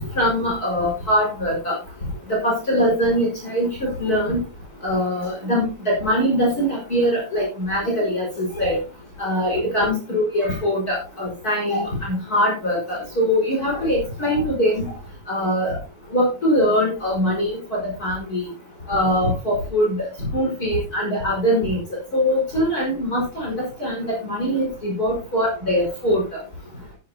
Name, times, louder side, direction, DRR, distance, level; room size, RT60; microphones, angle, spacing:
voice 1, 0.0-1.7 2.3-4.4 4.8-8.8 9.2-14.8 15.3-15.8 16.1-18.4 18.9-20.0 20.3-21.8 22.1-26.2, equal, 25° left, -3 dB, 5.0 m, -22 dB
14.0 x 10.0 x 2.7 m, 0.32 s
omnidirectional pair, 4.0 m